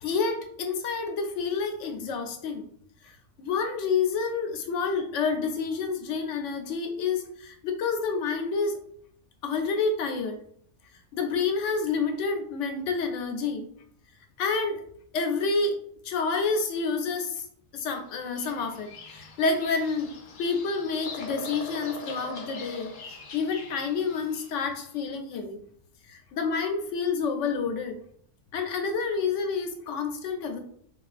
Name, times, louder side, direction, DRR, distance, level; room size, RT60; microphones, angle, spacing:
voice 1, 0.0-2.6 3.4-8.8 9.4-10.3 11.1-13.6 14.4-14.8 15.1-15.8 16.0-17.4 17.7-20.1 20.4-22.9 23.3-25.6 26.1-27.9 28.5-30.6, left 4 dB, 80° left, 5 dB, 0.9 m, -28 dB
Bird vocalization bird call bird song, 18.1-24.7, left 3 dB, 55° left, 0.6 m, -42 dB
3.8 x 2.4 x 2.4 m, 0.63 s
omnidirectional pair, 1.3 m